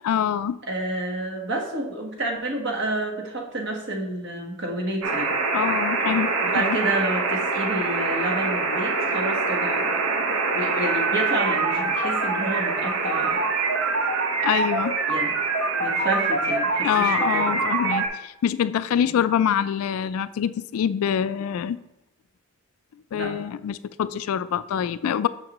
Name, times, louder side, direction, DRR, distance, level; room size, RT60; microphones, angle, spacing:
voice 1, 0.0-0.6 5.5-6.8 14.4-14.9 16.8-21.8 23.1-25.3, left 8 dB, 90° left, 14 dB, 0.3 m, -25 dB
voice 2, 0.7-5.3 6.4-9.9 10.5-13.4 15.1-15.4 15.8-17.7 18.9-19.1 23.1-23.3, right 1 dB, 55° right, 1 dB, 1.2 m, -29 dB
sound 1, 5.0-18.1, right 4 dB, 80° right, 0.8 m, -24 dB
6.5 x 6.3 x 2.9 m, 0.87 s
head